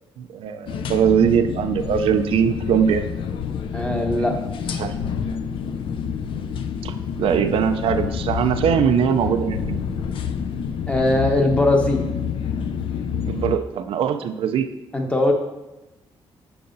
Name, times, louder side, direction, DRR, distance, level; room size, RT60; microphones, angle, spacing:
voice 1, 0.2-3.0 4.2-4.3 4.8-4.9 6.8-6.9 7.2-9.8 13.3-14.7, right 8 dB, 75° right, 8 dB, 0.4 m, -21 dB
sound 1, 0.7-13.6, left 7 dB, 65° left, 0.4 m, -28 dB
voice 2, 3.7-4.4 10.9-12.0 14.9-15.3, left 1 dB, 10° left, 2 dB, 0.9 m, -20 dB
6.8 x 6.8 x 2.6 m, 0.98 s
cardioid pair, 135°, 9 cm